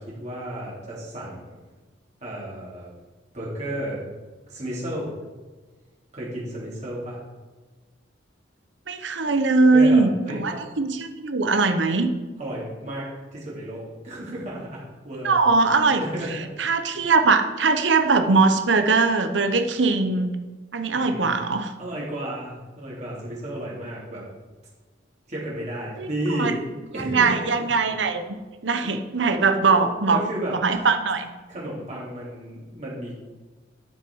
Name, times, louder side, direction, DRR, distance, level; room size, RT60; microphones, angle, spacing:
voice 1, 0.0-1.6 2.2-2.9 3.3-4.0 4.5-5.1 6.1-7.2 9.7-10.6 12.4-15.4 16.0-16.3 20.9-21.3 21.8-24.2 25.3-26.6 26.9-27.3 29.7-29.8 30.1-30.5 31.5-33.1, right 1 dB, 40° right, -6 dB, 3.1 m, -32 dB
voice 2, 8.9-12.1 15.2-16.0 16.6-20.4 20.7-21.7 26.0-26.1 26.4-26.6 26.9-28.4 28.6-30.2 30.5-31.3, right 4 dB, 80° right, 8 dB, 0.9 m, -21 dB
11.5 x 6.3 x 4.7 m, 1.3 s
head